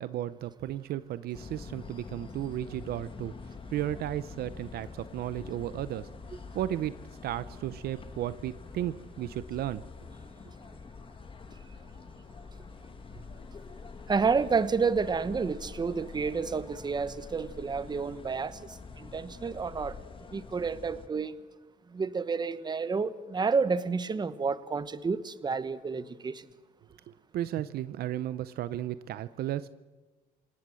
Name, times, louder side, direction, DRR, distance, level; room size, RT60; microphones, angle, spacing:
voice 1, 0.0-3.3 3.7-6.1 6.5-9.8 27.1-29.7, right 12 dB, 65° right, 15 dB, 0.7 m, -34 dB
sound 1, 1.3-21.1, left 4 dB, 30° left, 1.9 m, -46 dB
voice 2, 14.1-18.6 19.0-20.0 20.3-21.3 21.9-26.4, right 5 dB, 25° right, 14 dB, 1.2 m, -30 dB
28.0 x 18.5 x 7.7 m, 1.3 s
cardioid pair, 110°, 17 cm